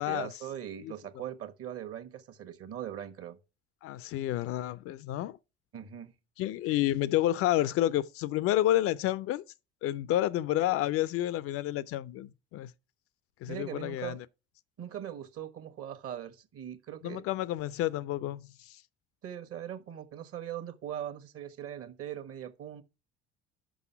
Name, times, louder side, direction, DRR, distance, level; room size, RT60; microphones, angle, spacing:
voice 1, 0.0-3.4 5.7-6.1 13.5-14.2 14.8-17.2 19.2-22.8, right 10 dB, 45° right, 1.2 m, -40 dB
voice 2, 3.8-5.4 6.4-9.4 9.8-12.7 13.4-14.2 17.0-18.8, left 14 dB, 45° left, 0.4 m, -30 dB
6.2 x 5.4 x 6.8 m
figure-of-eight pair, 60°, 32 cm